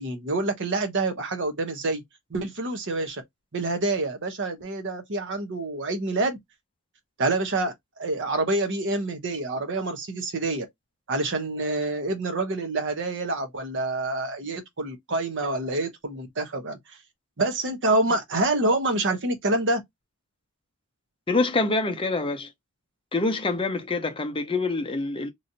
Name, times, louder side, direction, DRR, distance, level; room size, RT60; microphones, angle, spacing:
voice 1, 0.0-2.0 2.3-3.2 3.5-6.4 7.2-10.7 11.1-17.0 17.4-19.8, right 2 dB, 55° right, 0.9 m, -27 dB
voice 2, 21.3-22.5 23.1-25.3, left 3 dB, 25° left, 0.6 m, -26 dB
3.0 x 2.7 x 2.7 m
head